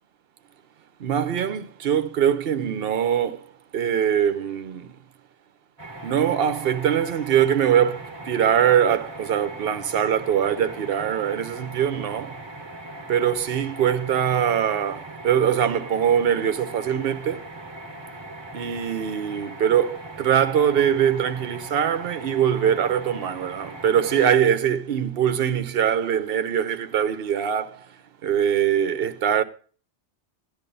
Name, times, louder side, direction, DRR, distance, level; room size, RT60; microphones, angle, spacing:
voice 1, 1.0-3.4 3.7-4.9 6.0-12.4 13.1-17.5 18.5-27.9 28.2-29.4, right 9 dB, 60° right, 0.9 m, -22 dB
sound 1, 5.8-24.3, right 1 dB, 25° right, 1.3 m, -40 dB
13.5 x 10.5 x 2.6 m
omnidirectional pair, 1.2 m